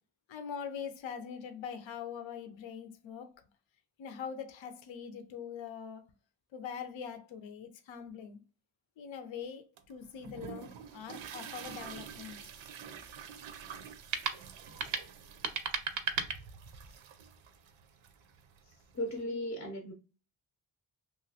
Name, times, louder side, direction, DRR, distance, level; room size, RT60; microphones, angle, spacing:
voice 1, 0.3-3.4 4.0-6.0 6.5-8.4 9.0-12.4, left 7 dB, 80° left, 0.6 m, -43 dB
sound 1, 9.8-19.2, right 7 dB, 90° right, 0.6 m, -48 dB
sound 2, 11.7-17.0, right 5 dB, 40° right, 0.4 m, -38 dB
voice 2, 18.6-19.9, left 1 dB, 30° left, 0.5 m, -37 dB
3.0 x 2.5 x 2.7 m
wide cardioid pair, 145°, 46 cm